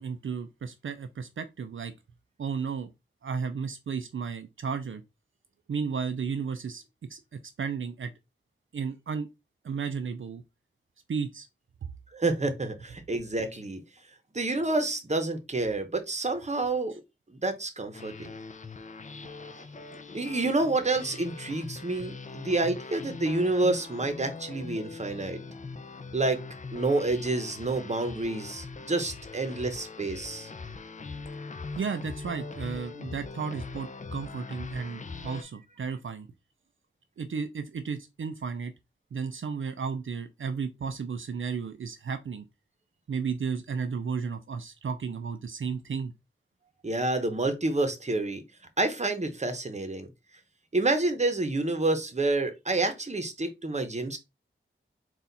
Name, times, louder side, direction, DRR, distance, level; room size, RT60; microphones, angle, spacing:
voice 1, 0.0-1.9 2.4-2.9 3.2-5.0 5.7-6.8 7.1-7.2 7.6-8.1 8.7-9.3 9.6-10.4 11.1-11.5 11.8-11.9 31.7-36.3 37.2-38.7 39.1-42.4 43.1-46.1, right 6 dB, 70° right, 0.4 m, -33 dB
voice 2, 12.1-13.8 14.3-16.9 17.3-18.3 20.1-25.4 26.1-26.4 26.7-30.5 46.8-48.4 48.8-50.1 50.7-54.2, right 2 dB, 35° right, 0.8 m, -28 dB
sound 1, 17.9-35.4, left 4 dB, 35° left, 0.5 m, -41 dB
4.1 x 2.4 x 4.0 m
wide cardioid pair, 80°, 21 cm